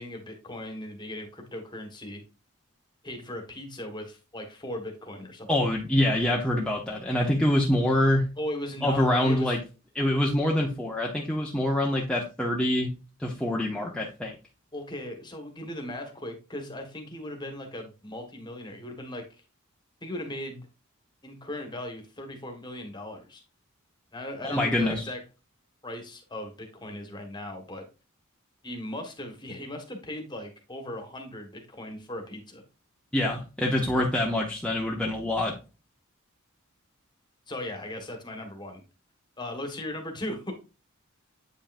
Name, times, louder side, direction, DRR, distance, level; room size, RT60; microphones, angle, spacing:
voice 1, 0.0-2.2 3.0-5.7 8.4-9.6 14.7-19.4 20.0-20.7 21.2-23.4 24.1-25.2 25.8-27.8 28.6-32.6 37.5-38.8 39.4-40.5, left 1 dB, 20° left, 4 dB, 1.5 m, -38 dB
voice 2, 5.5-8.3 8.8-9.6 9.9-12.9 13.2-14.3 24.4-25.0 33.1-35.6, left 1 dB, 5° left, -2 dB, 0.8 m, -25 dB
8.5 x 5.6 x 2.5 m, 0.31 s
head